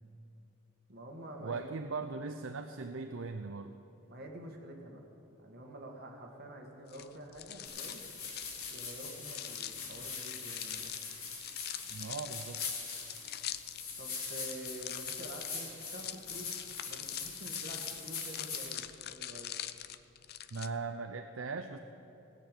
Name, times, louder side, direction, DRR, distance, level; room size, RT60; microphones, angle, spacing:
voice 1, 0.9-1.7 4.1-5.0 5.3-8.0 8.7-10.9 14.0-16.5 16.9-19.6, right 1 dB, 45° right, 1 dB, 1.7 m, -48 dB
voice 2, 1.4-3.7 11.9-12.6 20.5-21.8, right 4 dB, 60° right, 6 dB, 0.5 m, -39 dB
sound 1, 6.9-20.7, left 12 dB, 45° left, 0.4 m, -44 dB
sound 2, 7.6-18.8, left 4 dB, 80° left, 2.8 m, -42 dB
17.0 x 6.8 x 9.0 m, 2.9 s
head